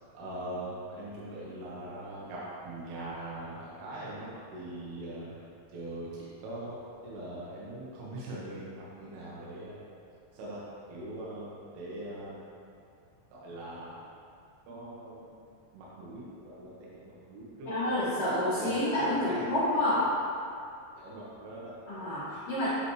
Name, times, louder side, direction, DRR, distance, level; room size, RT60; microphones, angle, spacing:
voice 1, 0.1-5.3 5.7-9.8 10.3-10.6 10.9-12.4 13.3-14.1 14.7-15.3 15.7-16.7 17.0-18.0 18.6-18.8 19.1-19.5 19.9-20.0 21.0-21.7, right 1 dB, 75° right, -7 dB, 2.8 m, -41 dB
voice 2, 17.6-20.0 21.9-22.7, left 1 dB, 70° left, -13 dB, 1.4 m, -28 dB
8.3 x 4.1 x 3.1 m, 2.5 s
omnidirectional pair, 4.9 m